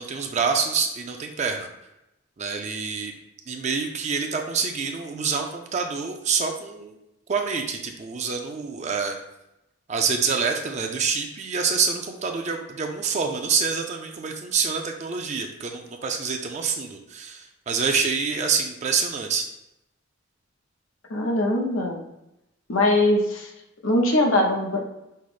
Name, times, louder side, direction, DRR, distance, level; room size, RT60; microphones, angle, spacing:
voice 1, 0.0-1.7 2.4-3.1 3.5-7.0 7.3-9.2 9.9-19.4, right 5 dB, 35° right, 3 dB, 0.4 m, -26 dB
voice 2, 21.1-22.0 22.7-23.5 23.8-24.8, left 1 dB, 90° left, 1 dB, 0.8 m, -21 dB
5.5 x 2.0 x 4.8 m, 0.89 s
head